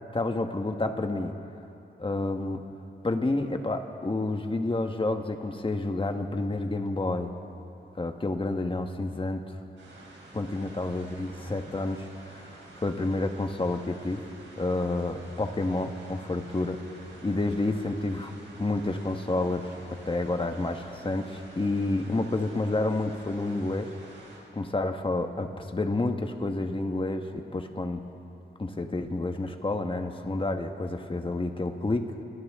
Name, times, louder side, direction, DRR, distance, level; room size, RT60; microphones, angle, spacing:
voice 1, 0.1-1.3 2.0-2.6 3.0-7.3 8.0-9.4 10.3-14.2 14.5-16.8 17.2-18.3 18.6-19.7 20.0-23.9 24.5-28.0 28.6-32.1, left 2 dB, 30° left, 5 dB, 1.5 m, -29 dB
sound 1, 9.8-24.4, right 2 dB, 90° right, 4.6 m, -49 dB
29.0 x 24.5 x 3.7 m, 2.7 s
wide cardioid pair, 90°, 19 cm